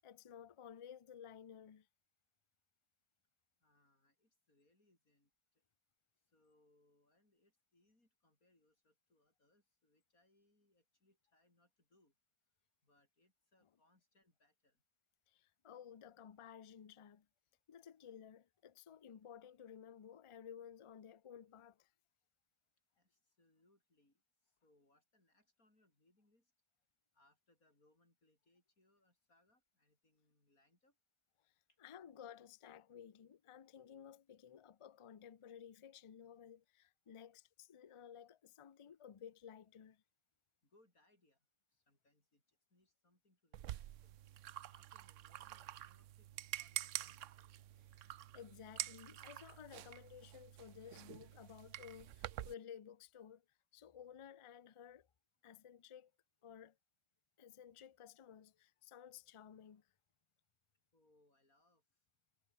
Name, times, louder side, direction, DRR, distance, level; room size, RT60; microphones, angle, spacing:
voice 1, 0.0-1.9 15.3-17.3 17.7-21.9 31.4-31.5 31.8-40.0 47.8-53.4 53.7-55.1 55.4-56.1 56.4-56.8 57.4-59.9, left 8 dB, 50° left, 0.3 m, -55 dB
voice 2, 3.6-5.6 6.2-12.1 12.8-14.8 23.0-26.5 27.1-31.0 31.7-31.8 40.6-44.1 44.7-47.3 60.9-62.0, left 2 dB, 85° left, 8.2 m, -76 dB
sound 1, 43.5-52.5, right 12 dB, 65° right, 0.9 m, -48 dB
omnidirectional pair, 1.5 m